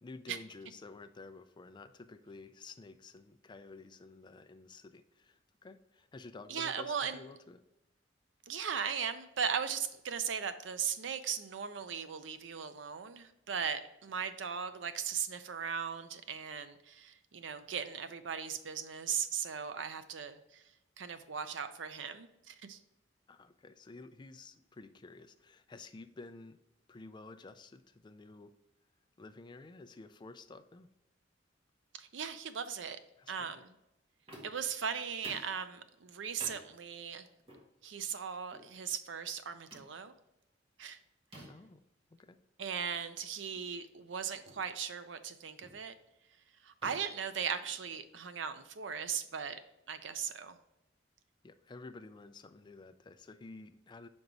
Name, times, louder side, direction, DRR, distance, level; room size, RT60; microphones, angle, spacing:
voice 1, 0.0-7.6 23.3-26.6 26.9-28.5 29.2-30.9 33.2-33.6 41.4-41.8 42.1-42.4 51.4-54.1, left 3 dB, 25° left, 10 dB, 0.3 m, -51 dB
voice 2, 6.5-7.2 8.5-20.6 21.0-22.8 32.0-33.0 33.3-33.7 34.4-37.3 37.8-40.1 40.8-41.0 42.6-45.9 46.6-49.6 49.9-50.6, right 7 dB, 80° right, 11 dB, 0.5 m, -38 dB
sound 1, 34.3-34.7 35.2-35.6 36.4-36.7 37.5-37.7 38.5-38.7 39.7-39.9 41.3-41.7 43.0-43.1 43.5-43.7 44.5-44.7 45.6-45.9 46.8-48.0, right 1 dB, 30° right, 1.5 m, -52 dB
5.3 x 3.9 x 4.7 m, 0.89 s
head